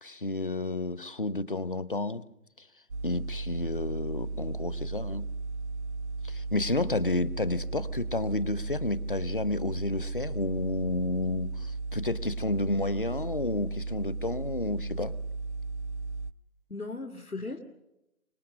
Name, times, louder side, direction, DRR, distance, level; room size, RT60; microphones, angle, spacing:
voice 1, 0.0-2.2 2.6-2.7 3.0-5.2 6.2-15.1, left 2 dB, 40° left, 18 dB, 0.7 m, -31 dB
sound 1, 2.9-16.3, right 3 dB, 50° right, 0.7 m, -35 dB
voice 2, 16.7-17.6, left 3 dB, 85° left, 5 dB, 2.2 m, -38 dB
25.5 x 21.5 x 6.4 m, 0.90 s
figure-of-eight pair, 155°, 43 cm